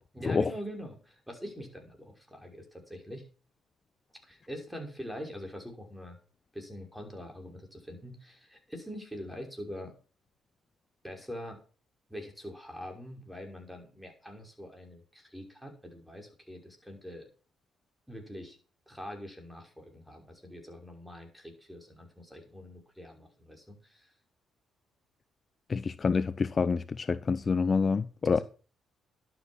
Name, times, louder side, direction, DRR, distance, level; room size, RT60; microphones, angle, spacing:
voice 1, 0.1-3.2 4.2-6.2 6.5-9.9 11.0-11.6 12.1-17.3 18.1-18.6 18.9-24.1 28.3-28.4, equal, 5° right, 5.6 m, -44 dB
voice 2, 25.7-28.4, left 5 dB, 40° left, 0.5 m, -27 dB
11.5 x 8.2 x 6.3 m
supercardioid pair, 65°, 0 cm